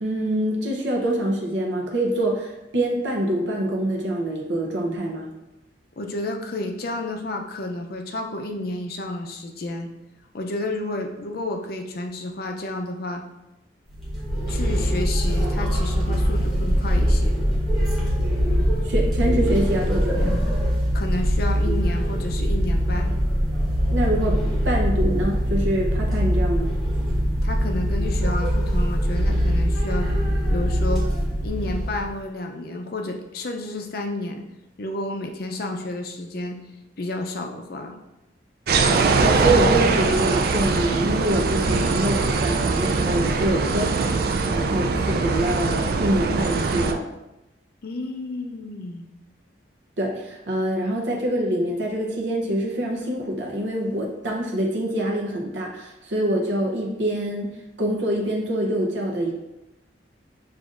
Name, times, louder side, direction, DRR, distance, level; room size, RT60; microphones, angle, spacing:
voice 1, 0.0-5.3 18.8-20.3 23.9-24.4 24.6-26.7 38.9-47.0 50.0-59.3, right 1 dB, 65° right, -1 dB, 0.7 m, -25 dB
voice 2, 6.0-9.9 10.3-13.2 14.5-17.4 20.9-23.1 27.4-30.1 30.5-31.1 31.4-34.4 34.8-36.6 37.0-37.9 41.7-41.9 47.8-49.1, left 2 dB, 50° left, 3 dB, 0.5 m, -31 dB
sound 1, 13.9-32.1, equal, ahead, 1.0 m, -22 dB
sound 2, 38.7-46.9, right 4 dB, 50° right, 0.3 m, -22 dB
6.9 x 2.5 x 2.5 m, 0.94 s
head